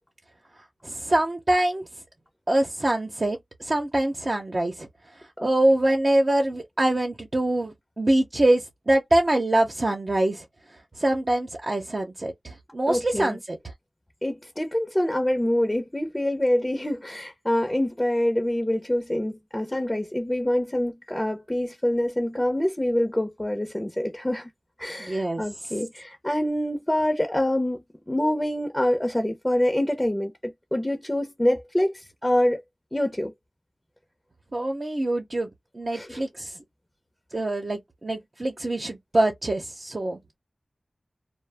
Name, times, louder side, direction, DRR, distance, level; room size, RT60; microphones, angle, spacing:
voice 1, 0.8-1.8 2.5-4.9 5.4-10.4 11.0-13.6 25.0-25.4 34.5-35.5 35.7-36.5 37.3-40.4, right 1 dB, 50° right, 0.8 m, -24 dB
voice 2, 12.9-13.4 14.2-24.5 24.8-32.6 32.9-33.3 35.9-36.2, left 1 dB, 20° left, 0.7 m, -26 dB
2.1 x 2.0 x 3.4 m
cardioid pair, 45°, 0 cm